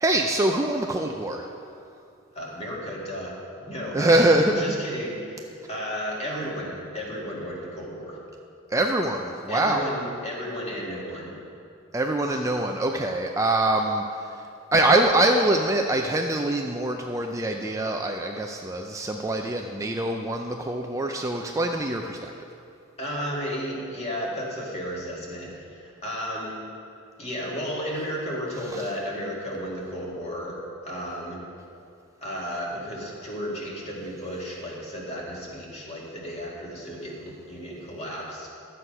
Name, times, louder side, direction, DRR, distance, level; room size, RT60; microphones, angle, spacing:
voice 1, 0.0-1.5 3.9-4.8 8.7-9.9 11.9-14.4 14.7-22.3 28.7-28.9, right 1 dB, 15° right, 3 dB, 0.4 m, -24 dB
voice 2, 2.3-3.4 3.6-4.2 4.6-5.4 5.7-8.2 9.5-11.3 23.0-26.6 27.2-30.6 30.8-31.4 32.2-38.5, equal, 30° left, -4 dB, 2.3 m, -33 dB
12.0 x 7.9 x 5.5 m, 2.5 s
head